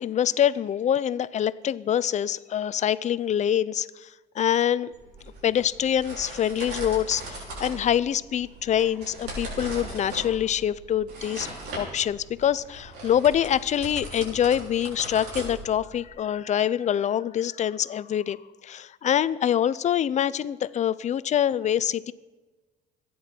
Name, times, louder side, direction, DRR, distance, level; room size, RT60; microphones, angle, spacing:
voice 1, 0.0-4.1 4.4-4.9 5.4-11.5 11.7-22.1, left 10 dB, 45° left, 18 dB, 0.6 m, -25 dB
sound 1, 4.9-16.1, right 2 dB, 75° right, 5.6 m, -39 dB
26.5 x 10.0 x 4.5 m, 1.3 s
cardioid pair, 110°, 17 cm